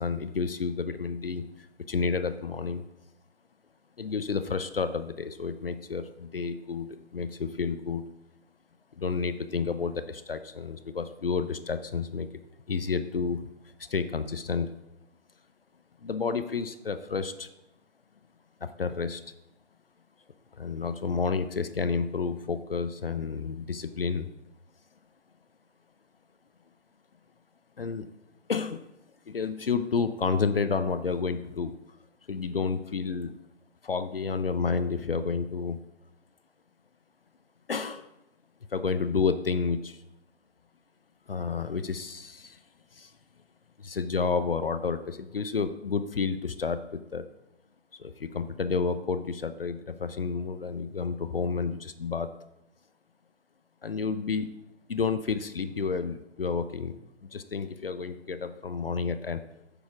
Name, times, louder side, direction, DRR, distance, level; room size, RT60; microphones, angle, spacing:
voice 1, 0.0-2.8 4.0-8.0 9.0-12.3 12.7-13.4 13.8-14.7 16.0-17.5 18.6-19.2 20.6-24.3 27.8-28.1 28.5-28.9 29.3-31.7 32.3-33.3 33.8-35.8 37.7-38.1 38.7-40.0 41.3-42.6 42.9-43.1 43.8-47.2 48.0-52.3 53.8-54.5 54.9-56.9 57.3-59.4, left 5 dB, 55° left, 11 dB, 0.6 m, -30 dB
9.7 x 7.0 x 3.7 m, 0.90 s
figure-of-eight pair, 145°, 35 cm